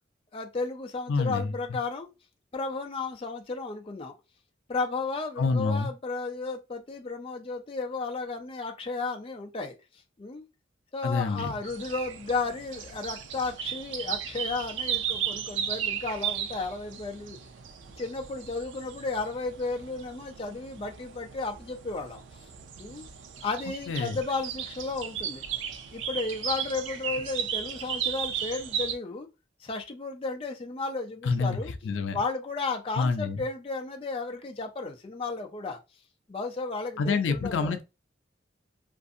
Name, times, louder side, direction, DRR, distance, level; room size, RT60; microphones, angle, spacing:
voice 1, 0.3-2.1 2.5-4.1 4.7-9.7 10.2-10.4 10.9-17.4 18.0-22.2 22.8-23.1 23.4-25.4 25.9-29.3 29.6-31.7 32.1-35.8 36.3-37.8, left 3 dB, 30° left, 0.4 m, -33 dB
voice 2, 1.1-1.5 5.4-5.9 11.0-11.5 23.9-24.2 31.2-31.6 31.8-32.2 33.0-33.4 37.0-37.8, left 4 dB, 90° left, 0.4 m, -27 dB
sound 1, 11.6-29.0, right 8 dB, 90° right, 0.4 m, -35 dB
2.6 x 2.5 x 2.5 m
head